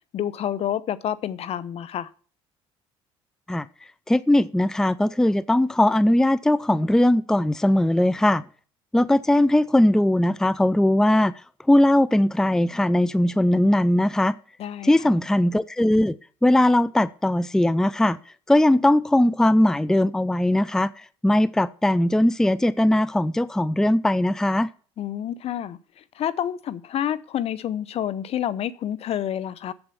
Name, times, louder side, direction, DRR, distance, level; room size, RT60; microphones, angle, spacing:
voice 1, 0.1-2.1 14.6-14.9 25.0-29.7, left 10 dB, 55° left, 0.8 m, -28 dB
voice 2, 4.1-8.4 8.9-11.3 11.7-14.3 14.8-18.2 18.5-24.7, left 1 dB, 5° left, 0.5 m, -20 dB
7.9 x 7.2 x 7.1 m
supercardioid pair, 75°, 12 cm